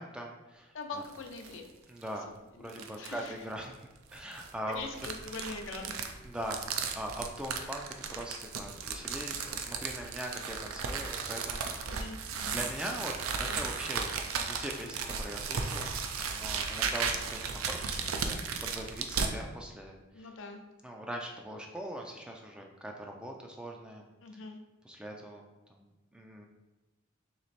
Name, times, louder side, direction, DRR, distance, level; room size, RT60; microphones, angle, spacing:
voice 1, 0.0-1.0 1.9-3.7 4.1-4.9 6.2-11.7 12.4-14.1 14.4-20.3 20.8-24.0 24.3-24.4 24.8-25.4 25.7-26.5, right 1 dB, 5° right, 1 dB, 0.3 m, -41 dB
voice 2, 0.7-1.7 2.6-2.7 3.0-3.3 4.7-6.0 11.9-12.6 13.4-13.6 20.1-20.6 24.2-24.6, left 3 dB, 65° left, 4 dB, 0.6 m, -42 dB
sound 1, 1.0-1.6 2.0-2.1 2.7-3.3 4.1-19.3, right 5 dB, 85° right, 0.5 m, -35 dB
3.3 x 3.1 x 4.1 m, 1.1 s
head